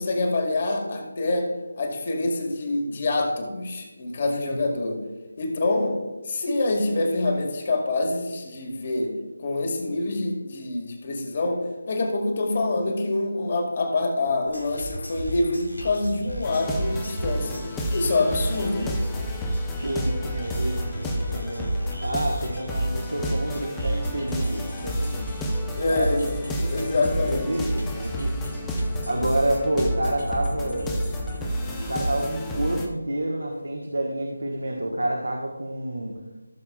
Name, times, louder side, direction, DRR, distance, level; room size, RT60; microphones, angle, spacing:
voice 1, 0.0-1.5 1.8-5.0 5.4-6.0 6.3-17.6 17.9-19.0 25.8-26.3 26.6-27.6, left 2 dB, 35° left, 3 dB, 1.9 m, -26 dB
sound 1, 14.5-32.2, right 1 dB, 85° left, 2.7 m, -36 dB
sound 2, 16.4-32.9, equal, 10° left, 0.8 m, -30 dB
voice 2, 19.8-21.7 22.0-26.3 26.6-28.5 29.1-30.9 31.4-36.2, right 1 dB, 75° right, 0 dB, 1.3 m, -29 dB
16.0 x 7.1 x 2.4 m, 1.1 s
figure-of-eight pair, 155°, 0 cm